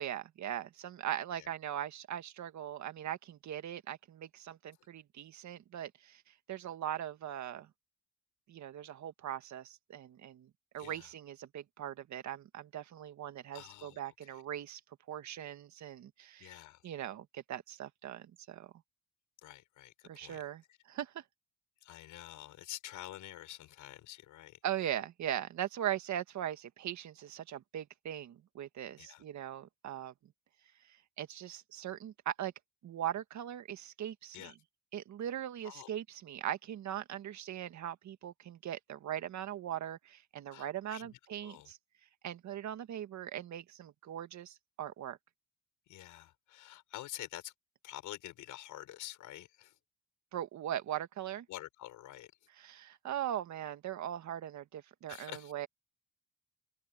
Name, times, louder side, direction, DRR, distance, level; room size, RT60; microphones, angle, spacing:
voice 1, 0.0-6.2 6.5-7.7 8.5-14.8 15.1-16.5 16.8-18.7 20.0-20.6 20.9-21.2 24.6-30.1 31.2-32.5 32.8-34.5 34.9-41.8 42.2-45.2 50.3-51.4 52.6-55.7, right 11 dB, 70° right, 1.7 m, -40 dB
voice 2, 10.8-11.1 13.5-14.4 16.4-16.8 19.4-20.4 20.7-20.8 21.8-24.6 29.0-29.2 34.3-34.5 35.6-35.9 40.5-41.7 45.9-47.5 47.8-49.8 51.5-52.3 55.1-55.7, left 14 dB, 85° left, 7.2 m, -48 dB
cardioid pair, 90°, 30 cm